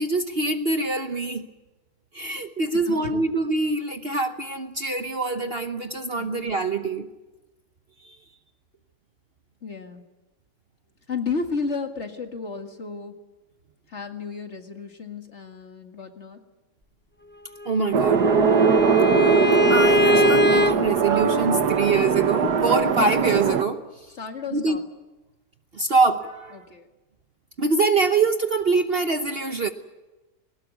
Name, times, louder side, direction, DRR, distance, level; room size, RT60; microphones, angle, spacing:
voice 1, 0.0-1.5 2.1-7.1 8.0-8.2 17.6-18.3 19.7-24.2 24.5-24.8 25.7-26.6 27.6-29.7, right 3 dB, 40° right, 7 dB, 1.1 m, -24 dB
voice 2, 9.6-10.0 11.1-13.1 13.9-16.4 24.2-24.8 26.5-26.9, left 4 dB, 45° left, 5 dB, 2.2 m, -32 dB
Bowed string instrument, 17.6-20.7, left 1 dB, 15° left, 0.4 m, -22 dB
sound 1, 17.9-23.6, right 6 dB, 80° right, 1.7 m, -20 dB
21.5 x 19.5 x 9.5 m, 1.1 s
omnidirectional pair, 1.7 m